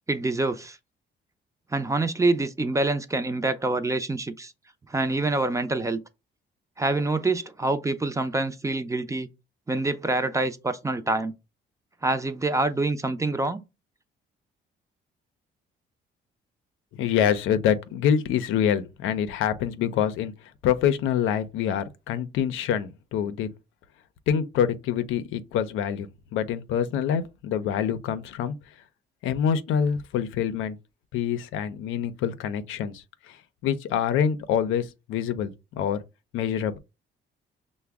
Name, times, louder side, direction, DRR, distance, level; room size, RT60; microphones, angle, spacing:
voice 1, 0.1-0.8 1.7-4.5 4.9-6.0 6.8-9.3 9.7-11.3 12.0-13.6, right 2 dB, 15° right, 0.5 m, -26 dB
voice 2, 16.9-20.3 20.6-23.5 24.3-26.1 26.3-28.5 29.2-30.8 31.1-33.4 33.6-36.0 36.3-36.8, left 8 dB, 90° left, 0.5 m, -26 dB
5.7 x 2.1 x 3.4 m
cardioid pair, 90°, 20 cm